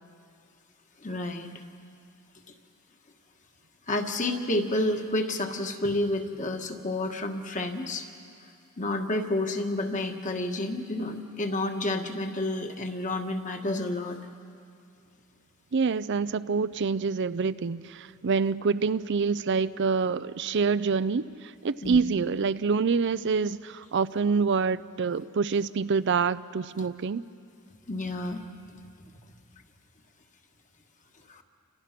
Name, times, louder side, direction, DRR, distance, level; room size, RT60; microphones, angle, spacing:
voice 1, 1.0-1.5 3.9-8.1 8.8-14.2 21.8-22.0 27.9-28.4 31.3-31.4, left 1 dB, 35° left, 4 dB, 1.5 m, -30 dB
voice 2, 15.7-21.3 21.6-27.2, right 5 dB, 55° right, 14 dB, 0.5 m, -26 dB
29.0 x 25.0 x 6.0 m, 2.4 s
head